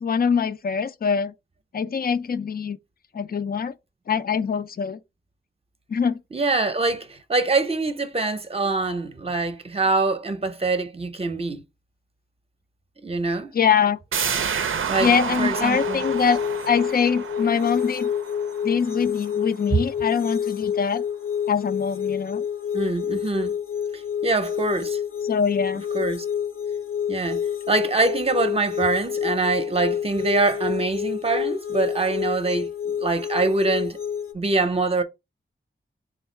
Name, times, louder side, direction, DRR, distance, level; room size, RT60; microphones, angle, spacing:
voice 1, 0.0-1.3 1.7-2.8 3.1-3.7 4.1-5.0 5.9-6.2 13.5-14.0 15.0-18.1 18.6-21.0 21.5-22.4 25.2-25.8, left 6 dB, 45° left, 0.4 m, -23 dB
voice 2, 6.3-11.6 13.0-13.5 14.9-16.0 22.7-23.6 23.9-25.0 25.9-26.2 27.1-27.4 27.7-34.0 34.3-35.0, right 3 dB, 30° right, 0.7 m, -24 dB
sound 1, 14.1-19.6 19.9-20.0, right 6 dB, 75° right, 0.5 m, -30 dB
sound 2, 15.5-34.3, left 8 dB, 80° left, 0.7 m, -28 dB
3.6 x 2.4 x 4.3 m
cardioid pair, 50°, 21 cm